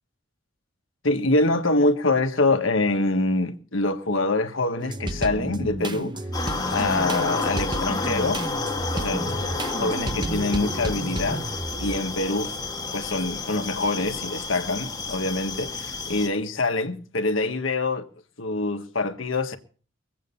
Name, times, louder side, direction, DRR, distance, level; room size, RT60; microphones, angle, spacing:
voice 1, 1.0-6.2 6.7-8.4 8.9-9.3 9.8-11.4 11.8-12.6 12.9-18.1 18.4-19.6, left 2 dB, 80° left, 1.5 m, -25 dB
sound 1, 4.8-12.2 12.7-13.6 14.2-14.4 14.7-15.7, right 1 dB, 25° right, 0.9 m, -32 dB
sound 2, 6.3-16.3, left 3 dB, 20° left, 1.7 m, -31 dB
22.5 x 8.5 x 5.5 m
head